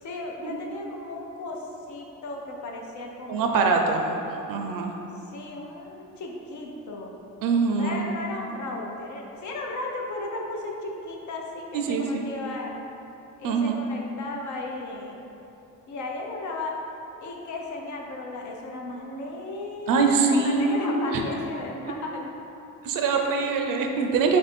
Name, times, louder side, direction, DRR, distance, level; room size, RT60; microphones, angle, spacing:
voice 1, 0.0-3.9 5.1-7.2 7.7-12.7 13.4-15.2 15.9-16.8 17.2-22.2, left 2 dB, 55° left, 0 dB, 0.6 m, -35 dB
voice 2, 3.3-4.2 4.5-4.9 7.4-8.2 11.7-12.3 13.4-13.8 19.9-21.2 22.8-24.4, right 4 dB, 70° right, 2 dB, 0.5 m, -23 dB
3.5 x 2.6 x 4.2 m, 3.0 s
cardioid pair, 100°, 35 cm